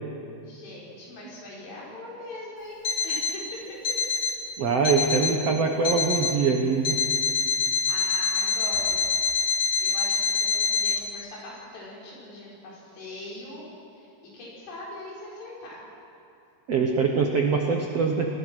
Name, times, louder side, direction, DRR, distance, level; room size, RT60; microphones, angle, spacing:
voice 1, 0.4-3.8 7.9-9.0 9.8-13.7 14.0-14.1 14.3-15.8, left 2 dB, 70° left, -5 dB, 7.8 m, -41 dB
Alarm, 2.8-3.4 3.8-4.4 4.8-5.4 5.8-6.4 6.8-11.0, left 5 dB, 45° left, 2.1 m, -25 dB
voice 2, 4.6-7.0 16.7-18.3, right 5 dB, 70° right, 2 dB, 1.5 m, -23 dB
27.5 x 20.0 x 6.4 m, 2.7 s
omnidirectional pair, 5.0 m